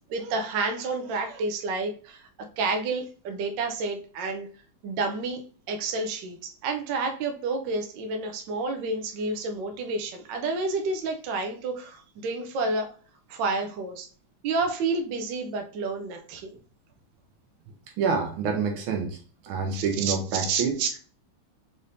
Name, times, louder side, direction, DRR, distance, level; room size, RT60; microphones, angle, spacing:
voice 1, 0.1-2.3 2.6-4.5 4.8-5.4 5.7-12.9 13.3-14.1 14.4-16.5 19.7-21.0, right 3 dB, 70° right, 4 dB, 1.2 m, -30 dB
voice 2, 18.0-19.2 19.4-20.8, right 5 dB, 85° right, 3 dB, 1.6 m, -27 dB
5.5 x 3.3 x 2.5 m, 0.41 s
omnidirectional pair, 2.2 m